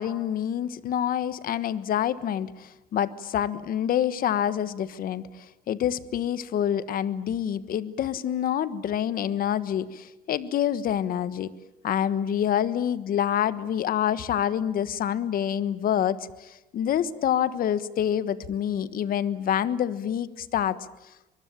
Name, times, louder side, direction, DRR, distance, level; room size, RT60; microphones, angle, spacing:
voice 1, 0.0-11.5 11.8-20.8, left 10 dB, 60° left, 15 dB, 1.4 m, -27 dB
24.0 x 23.0 x 8.9 m, 0.99 s
cardioid pair, 110°, 17 cm